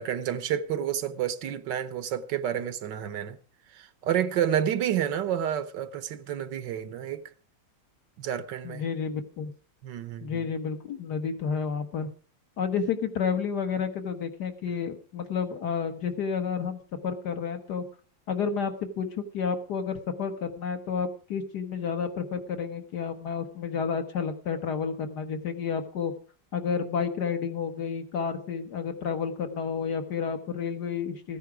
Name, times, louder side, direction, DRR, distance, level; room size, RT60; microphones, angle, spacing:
voice 1, 0.0-3.4 3.7-7.3 8.2-8.8 9.8-10.5, right 10 dB, 75° right, 1.5 m, -30 dB
voice 2, 8.6-9.5 10.2-12.1 12.6-17.8 18.3-26.1 26.5-31.4, left 6 dB, 60° left, 1.9 m, -30 dB
14.5 x 10.0 x 4.8 m
omnidirectional pair, 2.0 m